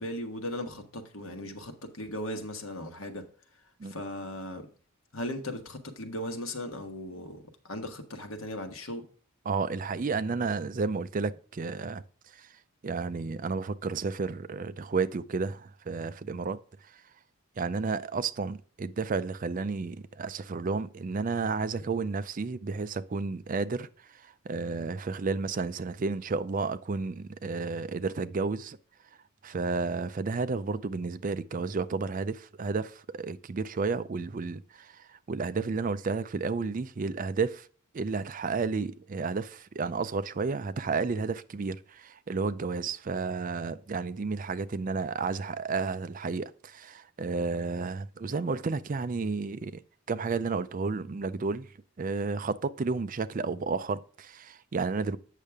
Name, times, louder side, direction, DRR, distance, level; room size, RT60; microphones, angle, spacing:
voice 1, 0.0-3.3 3.8-4.7 5.1-9.0, left 1 dB, 70° left, 1.4 m, -37 dB
voice 2, 9.5-12.0 12.3-12.5 12.8-16.6 16.9-17.0 17.6-28.8 29.4-37.7 37.9-49.8 50.1-51.7 52.0-55.2, right 4 dB, 40° right, 0.4 m, -32 dB
8.4 x 6.5 x 3.5 m
head